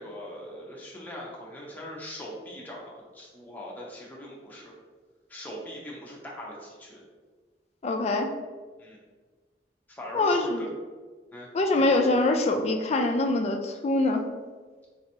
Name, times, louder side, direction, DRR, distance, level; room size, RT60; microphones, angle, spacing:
voice 1, 0.0-4.7 5.3-7.0 8.8-9.0 9.9-10.7 11.3-11.9, equal, 10° left, -4 dB, 0.7 m, -41 dB
voice 2, 7.8-8.3 10.1-10.7 11.5-14.3, left 2 dB, 35° left, 4 dB, 0.3 m, -24 dB
3.3 x 2.9 x 2.7 m, 1.4 s
head